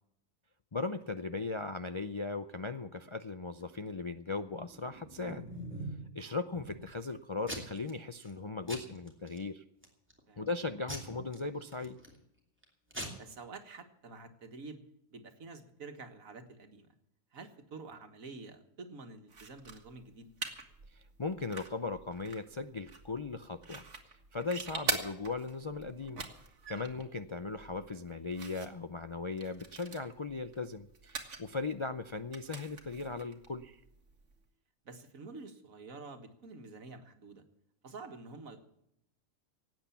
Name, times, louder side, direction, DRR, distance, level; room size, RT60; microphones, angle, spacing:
voice 1, 0.7-5.5 6.1-9.6 10.4-12.0 20.9-26.2 26.7-33.8, left 3 dB, 45° left, 8 dB, 0.4 m, -38 dB
Packing tape duct tape / Tearing, 4.7-6.1 6.5-7.0 7.4-7.9 8.2-8.4 8.7-9.4 9.8-10.2 10.9-12.2 12.6-12.7 12.9-13.1, right 1 dB, 10° right, 2.8 m, -43 dB
voice 2, 13.1-14.8 15.1-16.9 17.3-20.3 26.8-26.9 34.9-37.4 37.8-38.6, right 3 dB, 80° right, 7 dB, 2.0 m, -48 dB
sound 1, 19.3-34.4, right 4 dB, 60° right, 2.0 m, -44 dB
17.5 x 9.0 x 7.1 m, 0.79 s
omnidirectional pair, 1.4 m